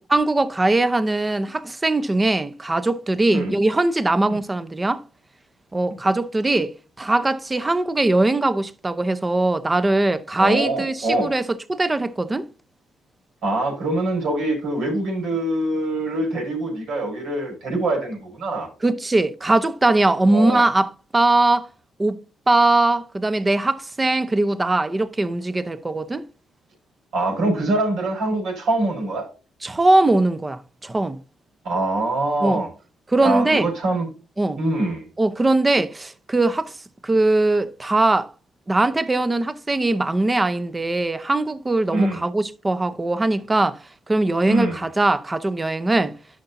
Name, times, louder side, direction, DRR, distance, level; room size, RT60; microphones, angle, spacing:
voice 1, 0.1-5.0 5.7-12.5 18.8-21.7 22.0-22.2 22.5-26.2 29.6-31.2 32.4-32.6 33.1-33.7 34.4-34.6 35.2-36.8 37.0-38.3 38.7-46.1, right 2 dB, 20° right, 0.7 m, -21 dB
voice 2, 10.4-11.3 13.4-18.7 20.3-20.6 27.1-29.3 31.6-32.7 33.2-34.1 34.6-35.0 41.9-42.2 44.5-44.8, right 2 dB, 75° right, 5.1 m, -24 dB
11.0 x 5.7 x 2.7 m
cardioid pair, 90°, 0 cm